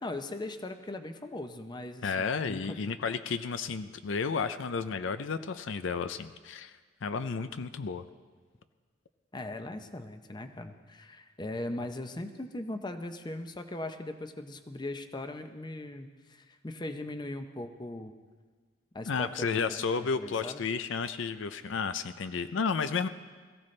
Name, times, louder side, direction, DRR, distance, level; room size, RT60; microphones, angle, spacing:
voice 1, 0.0-2.9 9.3-18.1 18.9-20.7, left 2 dB, 20° left, 7 dB, 0.7 m, -39 dB
voice 2, 2.0-8.0 19.1-23.1, left 5 dB, 70° left, 11 dB, 0.5 m, -32 dB
21.5 x 15.0 x 3.3 m, 1.5 s
head